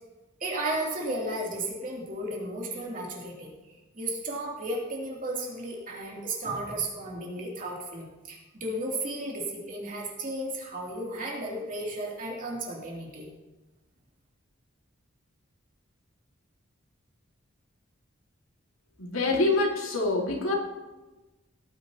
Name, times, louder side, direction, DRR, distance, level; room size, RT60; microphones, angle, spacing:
voice 1, 0.4-13.3, right 1 dB, 40° right, -3 dB, 2.9 m, -34 dB
voice 2, 19.0-20.6, left 2 dB, 90° left, 0 dB, 2.1 m, -25 dB
17.5 x 9.5 x 2.9 m, 1.1 s
head